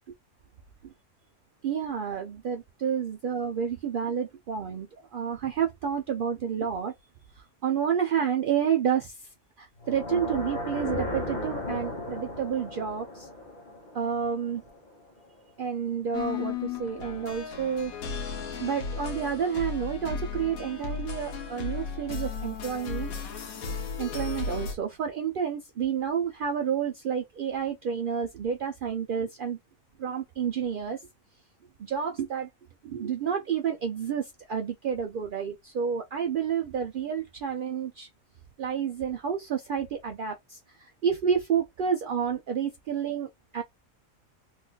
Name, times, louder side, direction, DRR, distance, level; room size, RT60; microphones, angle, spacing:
voice 1, 1.6-6.9 7.6-9.3 9.6-13.3 13.9-14.6 15.6-17.9 18.6-23.1 24.0-29.6 30.0-31.1 31.8-32.5 32.8-38.1 38.6-43.6, right 7 dB, 70° right, 0.5 m, -30 dB
sound 1, 9.8-14.9, left 1 dB, 40° left, 0.7 m, -35 dB
sound 2, 16.1-24.7, left 5 dB, 85° left, 1.4 m, -35 dB
3.8 x 2.5 x 2.2 m
omnidirectional pair, 1.5 m